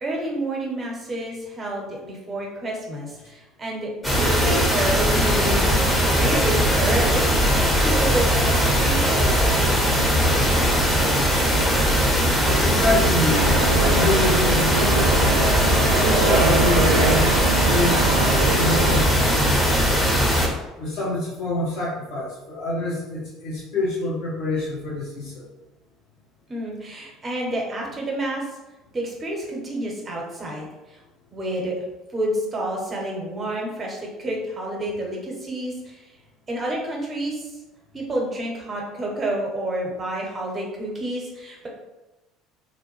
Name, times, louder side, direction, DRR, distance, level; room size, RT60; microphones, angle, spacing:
voice 1, 0.0-7.4 7.8-10.8 26.5-28.4 28.9-30.7 31.3-31.7 32.1-36.0 36.5-37.5 37.9-41.7, right 1 dB, 30° right, -2 dB, 0.9 m, -29 dB
sound 1, 4.0-20.5, equal, 5° left, 0.8 m, -20 dB
voice 2, 12.4-13.6 13.9-15.1 15.8-17.2 17.7-18.0 18.6-19.9 20.3-20.4 20.8-25.5, left 1 dB, 60° left, -6 dB, 0.9 m, -26 dB
sound 2, 13.3-19.0, right 3 dB, 65° right, 0.4 m, -24 dB
2.7 x 2.1 x 3.1 m, 1.1 s
figure-of-eight pair, 60°, 0 cm